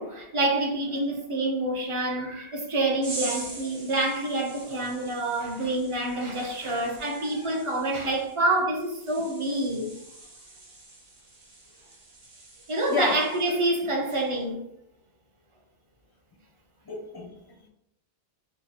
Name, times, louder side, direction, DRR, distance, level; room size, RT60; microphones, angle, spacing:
voice 1, 0.0-9.9 12.7-14.6, right 2 dB, 35° right, 0.7 m, -27 dB
sound 1, 3.0-13.7 14.0-14.4, right 2 dB, 85° right, 1.2 m, -43 dB
voice 2, 7.2-7.6 12.9-13.2 13.5-13.6 16.8-17.7, left 3 dB, 30° left, 0.4 m, -33 dB
4.7 x 2.1 x 2.8 m
omnidirectional pair, 1.1 m